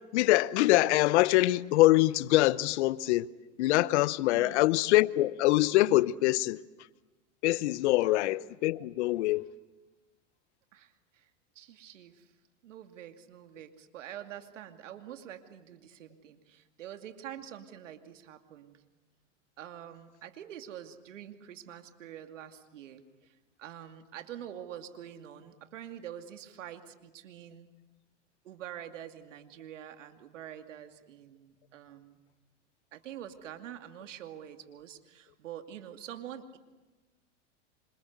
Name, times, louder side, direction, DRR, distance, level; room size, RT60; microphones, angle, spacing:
voice 1, 0.1-3.3 3.6-6.6 7.4-9.5, left 17 dB, 65° left, 1.0 m, -24 dB
voice 2, 4.3-4.7 8.0-8.2 10.7-11.3 11.5-12.3 12.6-18.8 19.6-27.7 28.4-32.2 32.9-36.6, right 10 dB, 80° right, 2.5 m, -46 dB
27.0 x 26.5 x 8.0 m
hypercardioid pair, 110°, 37 cm